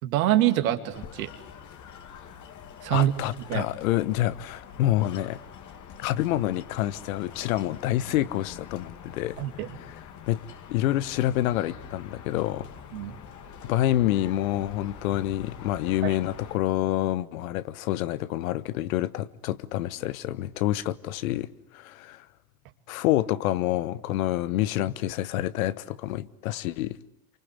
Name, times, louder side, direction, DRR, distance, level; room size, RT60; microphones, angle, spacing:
voice 1, 0.0-1.3 2.8-3.1 3.5-3.7 9.4-9.7 12.9-13.1 16.0-16.1, right 13 dB, 70° right, 2.7 m, -25 dB
sound 1, 0.9-16.6, left 7 dB, 45° left, 2.4 m, -45 dB
voice 2, 2.9-5.4 6.0-9.4 10.3-10.4 10.7-12.7 13.6-21.5 21.7-22.2 22.9-27.0, left 14 dB, 70° left, 1.2 m, -27 dB
28.5 x 25.0 x 8.2 m
hypercardioid pair, 80°, 43 cm